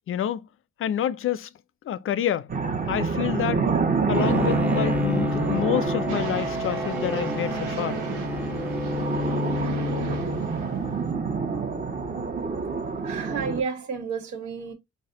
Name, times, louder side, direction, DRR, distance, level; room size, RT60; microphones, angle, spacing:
voice 1, 0.1-0.5 0.8-1.5 1.9-2.5 2.9-3.7 4.1-8.0, left 10 dB, 45° left, 0.4 m, -28 dB
sound 1, 2.5-13.6, right 5 dB, 30° right, 1.0 m, -28 dB
Bowed string instrument, 4.1-10.8, left 2 dB, 5° right, 0.7 m, -29 dB
sound 2, 6.1-11.1, right 4 dB, 85° right, 1.1 m, -36 dB
voice 2, 13.0-14.7, right 5 dB, 70° right, 1.4 m, -31 dB
4.1 x 2.2 x 3.7 m
cardioid pair, 90°, 30 cm